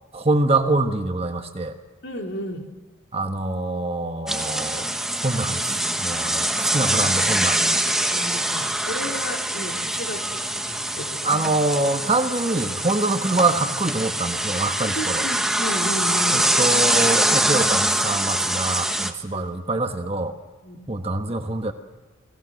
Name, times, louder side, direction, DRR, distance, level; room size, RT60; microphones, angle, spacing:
voice 1, 0.1-1.8 3.1-4.9 5.1-5.7 6.0-7.8 11.2-15.3 16.3-20.3 20.9-21.7, right 2 dB, 30° right, 6 dB, 1.3 m, -24 dB
voice 2, 2.0-2.7 6.8-7.0 8.1-11.3 15.0-16.5 19.3-19.4 20.6-20.8, equal, 60° left, 2 dB, 3.7 m, -33 dB
sound 1, 4.3-19.1, right 1 dB, ahead, 1.2 m, -24 dB
30.0 x 20.0 x 6.5 m, 1.3 s
head